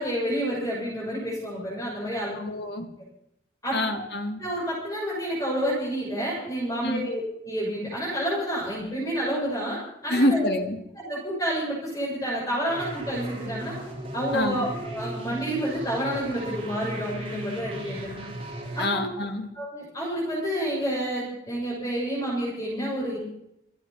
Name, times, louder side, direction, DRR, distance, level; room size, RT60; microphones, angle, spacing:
voice 1, 0.0-2.4 3.6-4.0 4.4-10.6 11.0-13.7 14.1-18.2 18.7-19.0 19.5-23.2, equal, 20° left, -8 dB, 6.4 m, -29 dB
voice 2, 2.4-2.9 3.7-4.4 6.8-7.1 10.1-10.8 14.3-14.6 18.8-19.5, left 1 dB, 65° left, 6 dB, 2.1 m, -26 dB
sound 1, 12.7-18.9, right 1 dB, 30° right, 4.3 m, -37 dB
27.0 x 9.3 x 5.7 m, 0.79 s
head